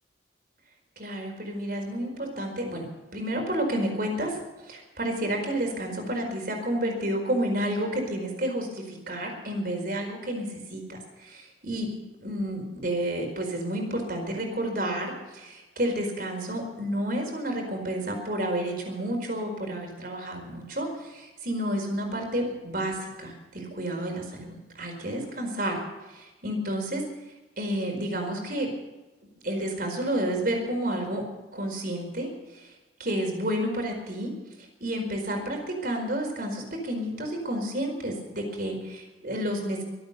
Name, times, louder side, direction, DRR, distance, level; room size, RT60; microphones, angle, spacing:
voice 1, 1.0-2.9 3.1-4.4 4.6-11.9 12.2-25.8 26.1-27.0 27.6-28.7 29.4-31.2 31.5-32.7 33.0-34.3 34.8-39.8, right 1 dB, 50° right, 3 dB, 4.6 m, -30 dB
24.0 x 8.7 x 6.8 m, 1.1 s
head